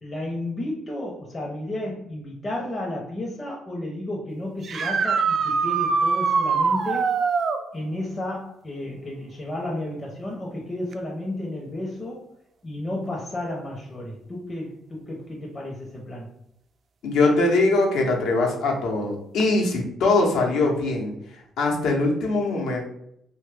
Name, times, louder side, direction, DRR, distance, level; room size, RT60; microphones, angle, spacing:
voice 1, 0.0-7.1 7.7-12.3 12.6-16.3, left 1 dB, 30° left, -2 dB, 0.6 m, -32 dB
sound 1, 4.6-7.6 10.9-11.0 13.1-13.2 19.4-19.5, right 5 dB, 55° right, 0.3 m, -23 dB
voice 2, 17.0-21.1 21.6-22.8, left 2 dB, 80° left, 0 dB, 0.8 m, -22 dB
3.0 x 2.2 x 3.3 m, 0.75 s
cardioid pair, 90°, 0 cm